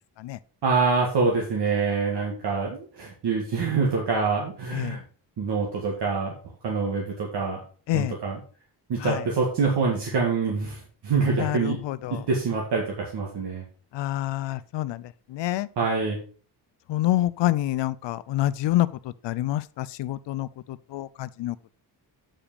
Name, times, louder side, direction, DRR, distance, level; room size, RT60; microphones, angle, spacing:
voice 1, 0.6-5.0 5.4-6.3 6.6-7.6 7.9-8.4 8.9-11.8 12.1-13.6 15.8-16.2, right 4 dB, 75° right, 2.1 m, -25 dB
voice 2, 11.4-12.2 13.9-15.0 15.3-15.7 16.9-18.9 19.2-21.6, left 14 dB, 90° left, 0.6 m, -27 dB
8.8 x 5.0 x 5.0 m
wide cardioid pair, 140°, 41 cm